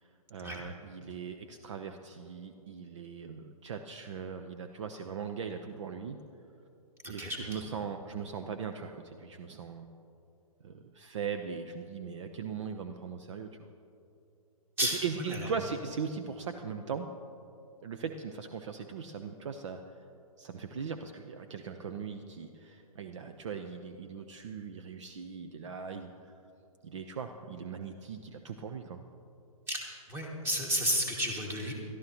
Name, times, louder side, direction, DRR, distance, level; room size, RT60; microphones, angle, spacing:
voice 1, 0.0-6.2 7.1-9.9 10.6-13.7 14.8-17.1 17.8-20.0 20.4-26.3 26.8-29.0, right 6 dB, 50° right, 7 dB, 0.7 m, -39 dB
voice 2, 7.0-7.6 14.8-15.4 29.7-31.7, equal, 10° right, 0 dB, 2.0 m, -32 dB
21.5 x 13.0 x 3.0 m, 2.7 s
figure-of-eight pair, 120°, 19 cm